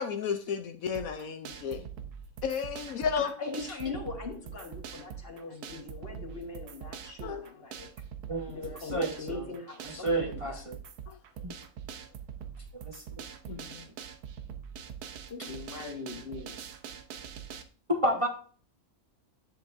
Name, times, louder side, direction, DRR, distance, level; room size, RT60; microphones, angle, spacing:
voice 1, 0.0-1.9 2.4-3.3 7.2-7.5 11.1-11.2 13.5-13.9, left 6 dB, 70° left, 1.1 m, -33 dB
sound 1, 0.9-17.6, right 8 dB, 90° right, 1.4 m, -44 dB
voice 2, 3.2-7.9 8.5-10.6 15.3-16.6, left 4 dB, 40° left, 1.8 m, -40 dB
voice 3, 8.9-9.4 9.8-10.8 11.4-11.5 12.7-13.0 17.9-18.3, right 1 dB, 25° right, 1.0 m, -30 dB
9.7 x 7.6 x 2.6 m
omnidirectional pair, 1.6 m